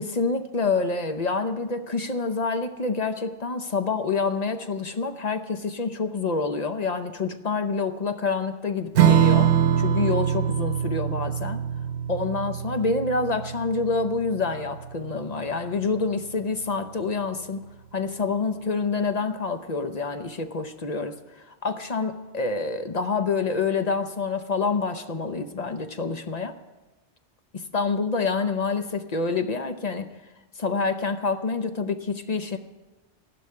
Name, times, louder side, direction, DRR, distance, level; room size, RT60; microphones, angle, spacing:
voice 1, 0.0-11.6 12.1-26.6 27.5-30.1 30.6-32.6, left 4 dB, 40° left, 7 dB, 0.8 m, -27 dB
Strum, 8.9-15.8, right 9 dB, 90° right, 1.0 m, -24 dB
15.5 x 6.0 x 9.6 m, 1.1 s
omnidirectional pair, 1.1 m